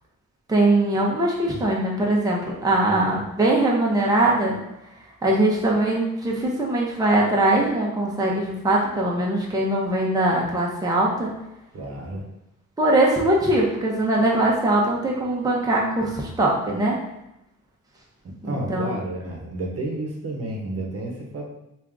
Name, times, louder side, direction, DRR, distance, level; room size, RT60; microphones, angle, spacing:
voice 1, 0.5-4.6 5.2-11.3 12.8-17.0 18.4-18.9, right 1 dB, 15° right, -3 dB, 0.8 m, -21 dB
voice 2, 11.7-12.3 18.2-21.5, right 2 dB, 55° right, -1 dB, 0.9 m, -31 dB
3.4 x 2.5 x 3.5 m, 0.86 s
cardioid pair, 105°, 29 cm